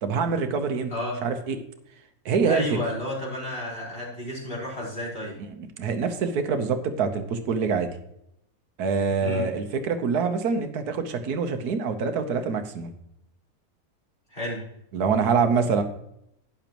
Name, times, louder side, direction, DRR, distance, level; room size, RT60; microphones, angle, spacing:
voice 1, 0.0-0.9 1.2-1.6 2.2-2.7 5.4-7.9 8.8-12.9 14.9-15.8, right 5 dB, 85° right, 8 dB, 1.5 m, -25 dB
voice 2, 2.5-5.3 9.2-9.5 14.3-14.6, left 1 dB, 35° left, -6 dB, 4.8 m, -31 dB
12.0 x 9.9 x 3.0 m, 0.78 s
omnidirectional pair, 1.6 m